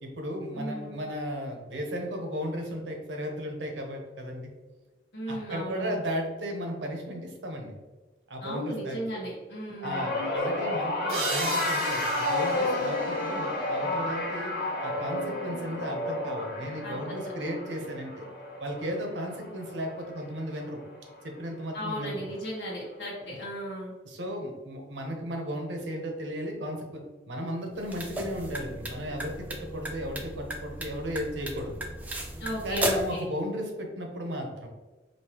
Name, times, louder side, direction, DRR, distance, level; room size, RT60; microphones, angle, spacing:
voice 1, 0.0-4.5 5.3-7.8 8.3-9.0 9.8-14.5 14.8-18.3 18.6-20.8 21.2-22.3 23.2-23.4 24.0-31.7 32.6-34.7, equal, 90° right, 2 dB, 0.9 m, -35 dB
voice 2, 0.5-1.0 5.1-6.0 8.4-10.1 16.8-17.2 21.7-23.9 32.4-33.3, equal, 80° left, -7 dB, 1.1 m, -35 dB
sound 1, 9.8-20.3 20.6-21.0 22.1-22.2, left 2 dB, 65° left, 1.0 m, -31 dB
sound 2, 11.1-14.5, right 3 dB, 55° right, 1.2 m, -38 dB
sound 3, 27.7-33.2, right 1 dB, 10° right, 0.4 m, -35 dB
5.3 x 2.7 x 2.9 m, 1.2 s
head